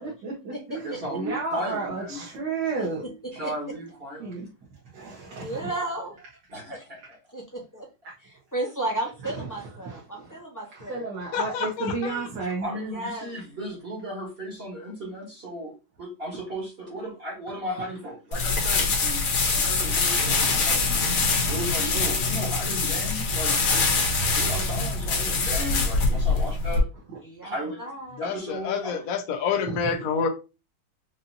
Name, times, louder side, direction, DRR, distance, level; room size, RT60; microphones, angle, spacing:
voice 1, 0.0-3.0 4.2-4.5 4.9-5.7 8.0-8.1 9.2-10.4 10.7-12.7 17.8-17.9 29.7-29.8, right 4 dB, 65° right, 1.8 m, -32 dB
voice 2, 0.8-2.2 3.3-4.5 6.5-7.2 12.6-21.1 21.4-23.6 24.3-26.9 27.5-27.8 28.2-29.0, equal, 35° right, 1.3 m, -35 dB
voice 3, 5.4-6.2 6.7-6.8 7.3-7.9 8.2-11.0 12.9-13.4 27.2-28.4, right 2 dB, 15° left, 0.7 m, -34 dB
voice 4, 11.3-12.2 28.2-30.3, left 6 dB, 55° left, 1.0 m, -28 dB
sound 1, 18.3-26.8, left 3 dB, 85° left, 2.0 m, -24 dB
5.2 x 2.7 x 2.7 m
omnidirectional pair, 2.2 m